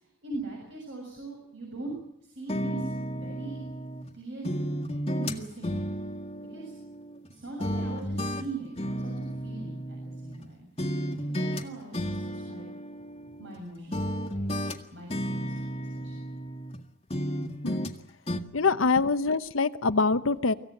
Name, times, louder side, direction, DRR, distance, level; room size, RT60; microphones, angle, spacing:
voice 1, 0.2-3.7 4.1-4.7 5.1-5.7 6.4-6.7 7.3-10.7 11.2-12.7 13.4-14.4 14.9-15.7 15.9-16.1, right 2 dB, 60° right, -1 dB, 7.3 m, -41 dB
sound 1, 2.5-4.1 4.4-7.3 7.6-10.5 10.8-11.6 11.9-13.6 13.9-16.8 17.1-18.0 18.3-18.4, equal, 30° left, 1.7 m, -33 dB
voice 2, 18.5-20.5, left 4 dB, 85° left, 11 dB, 1.0 m, -24 dB
25.0 x 15.5 x 9.1 m, 0.76 s
head